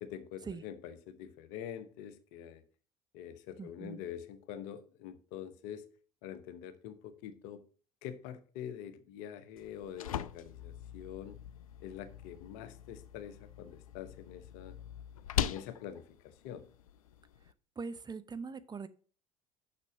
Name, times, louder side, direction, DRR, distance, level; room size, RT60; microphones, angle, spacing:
voice 1, 0.0-2.6 3.1-5.9 6.2-7.6 8.0-11.4 11.8-14.8 15.4-16.7, left 9 dB, 65° left, 0.9 m, -45 dB
voice 2, 3.6-4.0 17.8-18.9, right 4 dB, 25° right, 0.7 m, -42 dB
sound 1, 9.6-17.5, left 10 dB, 85° left, 0.4 m, -41 dB
6.6 x 6.0 x 5.9 m
hypercardioid pair, 60°, 18 cm